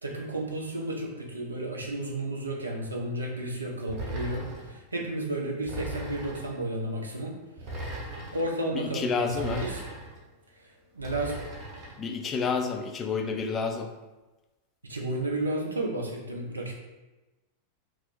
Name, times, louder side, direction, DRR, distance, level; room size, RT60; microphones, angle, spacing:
voice 1, 0.0-7.3 8.3-9.9 10.9-11.3 14.9-16.8, right 1 dB, 80° right, 0 dB, 0.5 m, -32 dB
sound 1, 3.9-4.8 5.7-6.6 7.6-8.5 9.3-10.2 11.0-12.0, right 2 dB, 40° right, 0.7 m, -38 dB
voice 2, 8.7-9.6 12.0-13.9, left 5 dB, 25° left, 4 dB, 0.3 m, -29 dB
2.4 x 2.0 x 3.7 m, 1.1 s
figure-of-eight pair, 90°, 0 cm